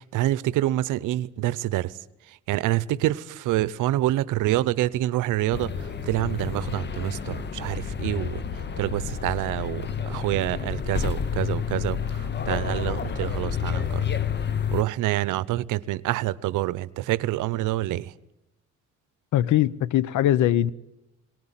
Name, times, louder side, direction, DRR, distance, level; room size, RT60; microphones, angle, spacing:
voice 1, 0.0-1.9 2.5-5.7 6.0-8.4 8.8-14.0 14.7-18.1, right 15 dB, 90° right, 0.7 m, -27 dB
sound 1, 5.5-14.8, left 7 dB, 35° left, 0.9 m, -29 dB
voice 2, 19.3-20.7, left 12 dB, 75° left, 0.8 m, -21 dB
19.0 x 19.0 x 8.9 m
cardioid pair, 90°, 30 cm